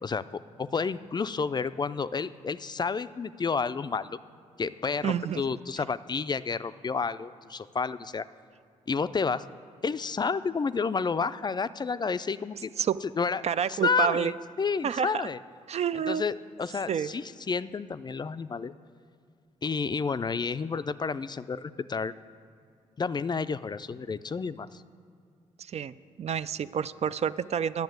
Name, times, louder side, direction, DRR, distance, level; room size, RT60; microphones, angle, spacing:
voice 1, 0.0-4.2 4.6-8.2 8.9-9.4 9.8-12.7 13.2-13.4 13.7-15.4 15.9-18.7 19.6-22.1 23.0-24.8, left 5 dB, 30° left, 14 dB, 0.4 m, -30 dB
voice 2, 5.0-5.4 12.8-13.0 13.4-14.3 14.8-15.3 15.7-16.2 16.9-17.1 25.6-27.8, right 8 dB, 50° right, 14 dB, 0.4 m, -29 dB
9.5 x 6.9 x 7.9 m, 2.3 s
supercardioid pair, 55°, 14 cm